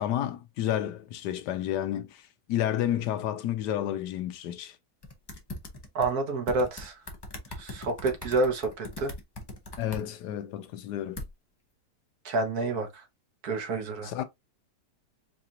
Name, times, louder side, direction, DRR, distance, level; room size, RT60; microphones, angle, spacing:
voice 1, 0.0-2.2 2.5-4.8 9.8-11.2 14.0-14.2, left 11 dB, 85° left, 1.2 m, -30 dB
sound 1, 5.0-6.1 6.5-10.0 11.2-11.3, left 1 dB, 40° left, 0.3 m, -40 dB
voice 2, 5.9-7.0 7.6-9.1 12.2-13.0 13.4-14.1, right 3 dB, 65° right, 1.5 m, -28 dB
4.8 x 2.4 x 2.8 m
omnidirectional pair, 1.8 m